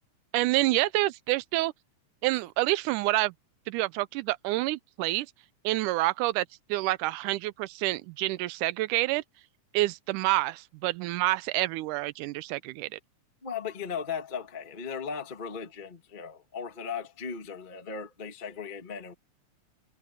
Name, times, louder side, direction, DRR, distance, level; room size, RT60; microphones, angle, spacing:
voice 1, 0.3-1.7 2.2-3.3 3.7-5.3 5.6-9.2 9.7-13.0, right 18 dB, 85° right, 2.1 m, -28 dB
voice 2, 13.4-19.1, left 6 dB, 20° left, 1.5 m, -37 dB
omnidirectional pair, 3.6 m